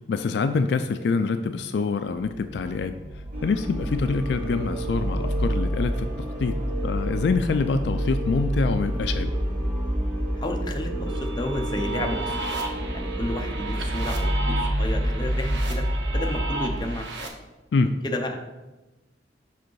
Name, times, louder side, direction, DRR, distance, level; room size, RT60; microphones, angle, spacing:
voice 1, 0.1-2.9 3.4-6.1 6.4-6.6 6.8-9.3 17.7-17.9, left 4 dB, 70° left, 9 dB, 0.3 m, -25 dB
sound 1, 2.2-16.9, equal, 20° right, 0.7 m, -28 dB
sound 2, 3.3-13.7, right 2 dB, 45° right, 1.1 m, -37 dB
voice 2, 10.4-12.4 12.9-15.8 16.1-17.3 18.0-18.3, left 1 dB, 25° left, 3 dB, 0.7 m, -32 dB
sound 3, 11.1-17.3, right 3 dB, 80° right, 0.9 m, -34 dB
5.5 x 5.0 x 4.6 m, 1.1 s
head